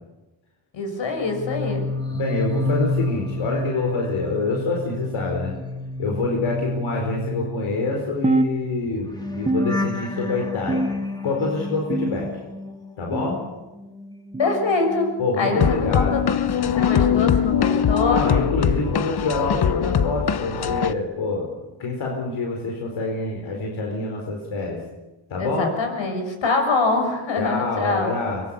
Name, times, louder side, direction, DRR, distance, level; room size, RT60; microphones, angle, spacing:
voice 1, 0.7-1.8 14.4-15.1 15.4-18.2 25.4-28.1, left 3 dB, 70° left, 5 dB, 6.8 m, -24 dB
sound 1, 1.2-13.4 13.7-15.8 16.1-16.5, left 2 dB, 10° left, 2.6 m, -30 dB
voice 2, 2.1-5.5 6.0-9.1 9.4-10.8 11.2-12.3 13.0-13.4 15.2-16.3 18.0-21.5 21.8-24.8 25.3-25.7 27.4-28.4, left 3 dB, 90° left, 0 dB, 4.7 m, -26 dB
sound 2, 8.2-9.1 9.5-10.3 10.7-11.3 11.9-12.5 13.1-13.5 14.3-14.6 15.6-15.8 16.8-17.0 18.0-18.2 19.2-19.4 20.4-20.6 21.7-21.8 22.9-23.0, right 1 dB, 15° right, 1.1 m, -27 dB
sound 3, 15.6-20.9, left 8 dB, 55° left, 1.1 m, -21 dB
24.5 x 22.0 x 8.5 m, 1.1 s
cardioid pair, 105°, 47 cm